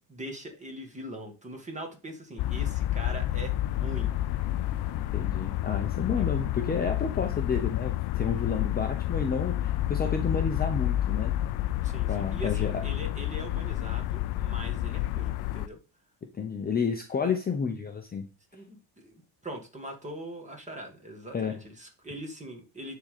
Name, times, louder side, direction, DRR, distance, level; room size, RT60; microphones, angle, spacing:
voice 1, 0.0-4.1 6.2-6.3 11.8-15.8 18.5-23.0, right 1 dB, 15° right, 3 dB, 2.0 m, -41 dB
sound 1, 2.4-15.7, left 14 dB, 60° left, 0.5 m, -29 dB
sound 2, 3.5-9.0, right 6 dB, 55° right, 1.5 m, -53 dB
voice 2, 5.1-11.3 12.1-12.8 16.4-18.3 21.3-21.6, left 5 dB, 20° left, 4 dB, 0.8 m, -30 dB
10.5 x 3.9 x 6.6 m, 0.33 s
cardioid pair, 175°, 45 cm